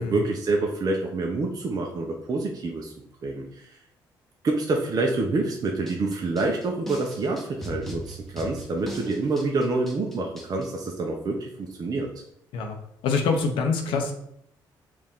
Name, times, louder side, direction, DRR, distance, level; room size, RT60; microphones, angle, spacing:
voice 1, 0.0-2.9 3.2-3.8 4.4-12.1, right 3 dB, 50° right, 1 dB, 0.6 m, -27 dB
sound 1, 5.9-10.7, equal, 5° left, 0.9 m, -39 dB
voice 2, 13.0-14.1, left 4 dB, 85° left, 4 dB, 0.6 m, -25 dB
4.5 x 2.5 x 3.5 m, 0.72 s
supercardioid pair, 70°, 9 cm